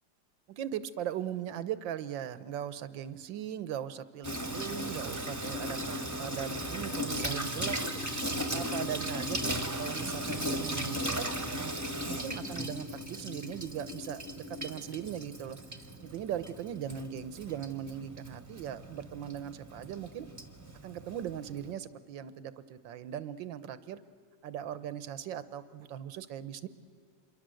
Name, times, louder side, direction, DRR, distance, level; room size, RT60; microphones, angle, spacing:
voice 1, 0.5-15.6 16.0-20.3 20.8-24.0 24.4-26.7, right 10 dB, 80° right, 15 dB, 1.6 m, -39 dB
Water tap faucet / Sink (filling or washing), 4.2-21.7, equal, 10° right, 1.4 m, -37 dB
27.5 x 23.0 x 7.7 m, 2.3 s
omnidirectional pair, 2.0 m